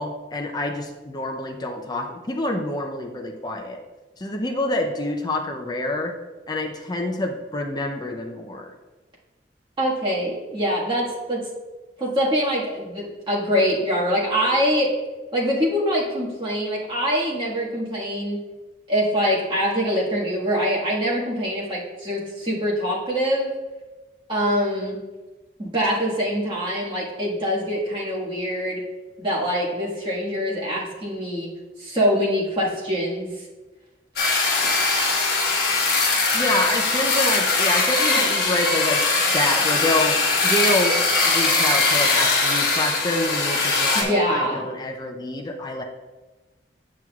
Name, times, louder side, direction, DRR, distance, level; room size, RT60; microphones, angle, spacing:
voice 1, 0.0-3.8 4.2-6.1 6.5-8.7 36.3-39.0 39.3-45.8, left 1 dB, 25° left, 2 dB, 0.5 m, -27 dB
voice 2, 9.8-11.4 12.0-14.9 15.3-18.4 18.9-23.5 24.3-25.0 25.6-28.8 29.2-31.5 31.8-33.3 43.9-44.7, equal, 30° right, -6 dB, 1.6 m, -24 dB
sound 1, 34.2-44.0, left 3 dB, 60° left, 1.4 m, -21 dB
9.5 x 6.0 x 2.4 m, 1.2 s
head